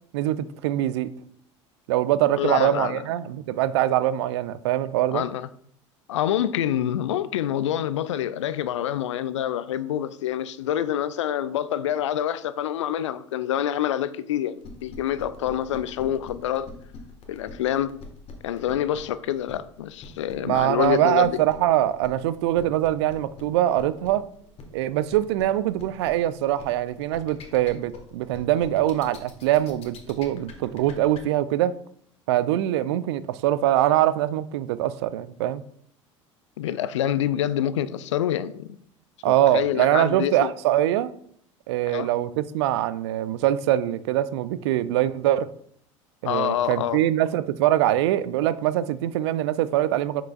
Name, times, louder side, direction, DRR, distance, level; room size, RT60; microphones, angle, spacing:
voice 1, 0.1-1.1 1.9-5.2 20.4-24.2 24.7-31.7 32.3-35.6 39.2-41.1 41.7-45.5 46.2-50.2, right 13 dB, 60° right, 0.4 m, -23 dB
voice 2, 2.4-3.0 5.1-5.5 6.1-16.7 17.3-17.9 18.4-21.4 36.6-38.8 39.3-40.5 41.9-42.1 46.2-47.0, left 11 dB, 70° left, 0.4 m, -26 dB
sound 1, 14.6-31.2, left 5 dB, 40° left, 1.5 m, -44 dB
6.8 x 6.0 x 2.4 m
figure-of-eight pair, 70°, 16 cm